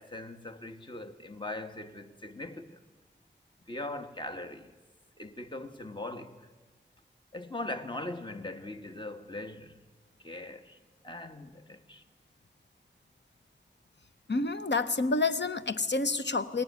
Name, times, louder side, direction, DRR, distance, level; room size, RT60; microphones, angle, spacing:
voice 1, 0.0-2.8 3.7-4.7 5.2-6.5 7.3-9.9 10.2-10.8 11.0-12.0, left 2 dB, 25° left, 1.3 m, -40 dB
voice 2, 14.3-16.6, left 3 dB, 65° left, 0.9 m, -28 dB
22.0 x 18.5 x 9.5 m
wide cardioid pair, 60°, 20 cm